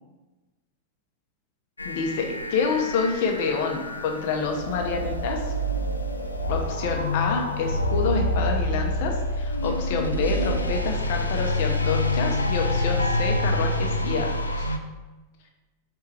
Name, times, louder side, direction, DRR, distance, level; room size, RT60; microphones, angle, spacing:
sound 1, 1.8-14.8, left 1 dB, 80° left, 0.3 m, -27 dB
voice 1, 1.8-5.4 6.5-14.7, left 5 dB, 50° left, 2 dB, 0.7 m, -28 dB
4.5 x 3.4 x 3.2 m, 1.1 s
figure-of-eight pair, 90°, 0 cm